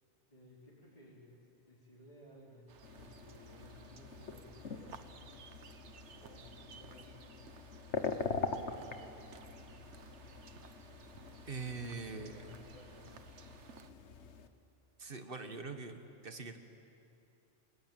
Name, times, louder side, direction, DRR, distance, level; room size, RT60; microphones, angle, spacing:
voice 1, 0.3-1.4 1.7-5.0 6.2-7.4 7.9-9.2 12.1-13.2, left 1 dB, 30° left, -9 dB, 4.9 m, -58 dB
sound 1, 2.7-13.9, right 7 dB, 75° right, 1.2 m, -57 dB
sound 2, 2.8-14.5, left 4 dB, 70° left, 1.5 m, -44 dB
voice 2, 11.5-12.6 15.0-16.6, right 4 dB, 50° right, 7 dB, 1.7 m, -43 dB
28.5 x 20.5 x 9.0 m, 2.7 s
omnidirectional pair, 1.2 m